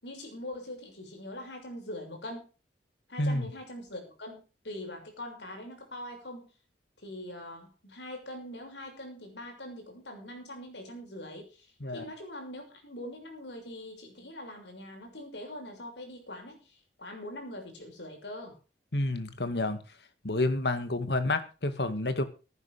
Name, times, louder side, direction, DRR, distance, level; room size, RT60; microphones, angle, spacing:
voice 1, 0.0-2.5 3.1-6.5 7.0-18.6, left 1 dB, 85° left, 3 dB, 6.6 m, -43 dB
voice 2, 3.2-3.5 11.8-12.0 18.9-19.8 20.2-22.2, left 2 dB, 70° left, 10 dB, 2.1 m, -29 dB
16.0 x 11.0 x 5.1 m, 0.33 s
head